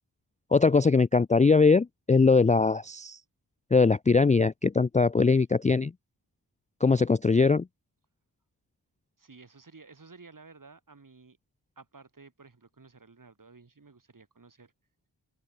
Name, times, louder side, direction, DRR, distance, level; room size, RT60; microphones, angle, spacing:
voice 1, 0.5-3.2 3.7-5.9 6.8-7.6, left 4 dB, 20° left, 0.4 m, -21 dB
voice 2, 9.2-11.4 11.8-14.7, right 4 dB, 50° right, 7.9 m, -53 dB
wide cardioid pair, 90°, 41 cm